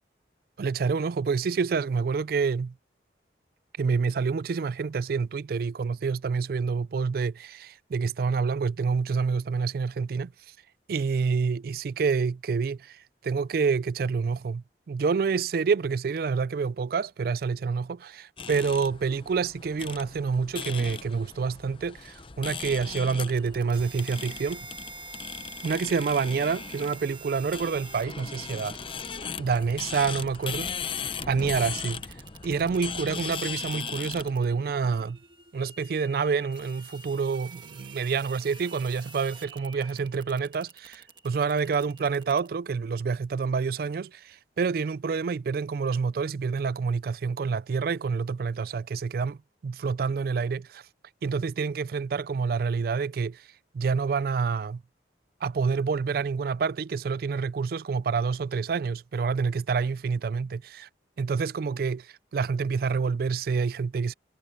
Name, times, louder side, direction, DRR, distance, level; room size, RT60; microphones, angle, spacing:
voice 1, 0.6-2.7 3.8-10.3 10.9-24.7 25.6-28.8 29.4-30.7 31.3-32.0 32.4-35.2 35.5-49.4 49.6-50.8 51.2-53.4 53.7-54.8 55.4-60.9 61.2-62.1 62.3-64.1, right 5 dB, 55° right, 0.3 m, -28 dB
sound 1, 18.4-34.3, left 6 dB, 30° left, 0.6 m, -38 dB
sound 2, 22.8-42.5, right 3 dB, 25° right, 1.5 m, -47 dB
head